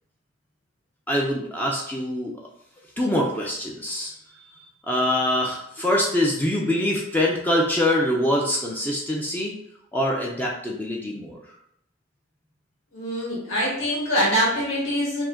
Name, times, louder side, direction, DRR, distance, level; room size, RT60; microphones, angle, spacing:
voice 1, 1.1-2.3 3.0-4.5 4.9-9.5 9.9-11.4, left 1 dB, 10° left, -2 dB, 0.4 m, -24 dB
voice 2, 12.9-15.2, equal, 75° left, -5 dB, 1.5 m, -24 dB
4.8 x 2.1 x 3.7 m, 0.72 s
head